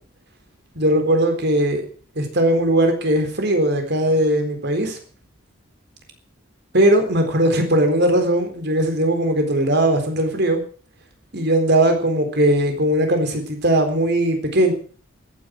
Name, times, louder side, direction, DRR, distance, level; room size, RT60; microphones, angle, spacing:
voice 1, 0.8-1.8 2.2-5.0 6.7-10.6 11.3-14.7, right 1 dB, 55° right, 5 dB, 3.9 m, -19 dB
14.0 x 10.0 x 8.0 m, 0.43 s
head